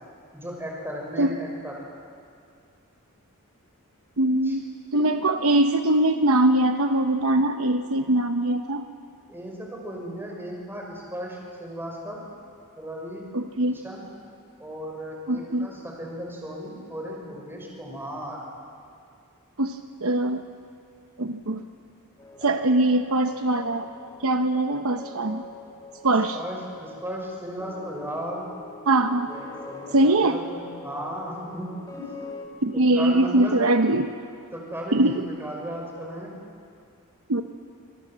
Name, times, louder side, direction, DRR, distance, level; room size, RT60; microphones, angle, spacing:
voice 1, 0.3-1.7 4.4-4.6 4.9-5.1 9.3-12.2 12.8-13.3 13.7-14.1 14.6-18.4 26.3-28.4 29.3-32.1 32.7-33.6 34.5-36.3, equal, 10° right, -1 dB, 5.7 m, -36 dB
voice 2, 4.2-4.6 4.9-8.9 13.3-13.8 15.3-15.7 19.6-20.4 21.2-21.6 22.4-23.9 24.2-25.5 26.0-26.4 28.9-29.3 29.9-30.4 32.6-34.1 34.9-35.2 37.3-37.4, right 1 dB, 65° right, 7 dB, 0.9 m, -22 dB
sound 1, 22.2-32.5, left 3 dB, 15° left, 2.1 m, -44 dB
26.0 x 23.0 x 7.5 m, 2.3 s
head